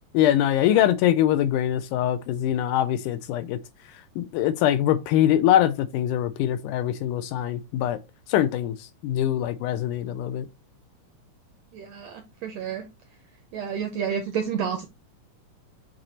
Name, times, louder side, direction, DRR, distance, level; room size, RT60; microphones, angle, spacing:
voice 1, 0.1-3.6 4.2-8.0 8.3-10.5, left 11 dB, 80° left, 1.9 m, -23 dB
voice 2, 11.7-12.8 13.5-14.9, right 7 dB, 75° right, 1.5 m, -30 dB
7.7 x 3.0 x 4.1 m
omnidirectional pair, 3.8 m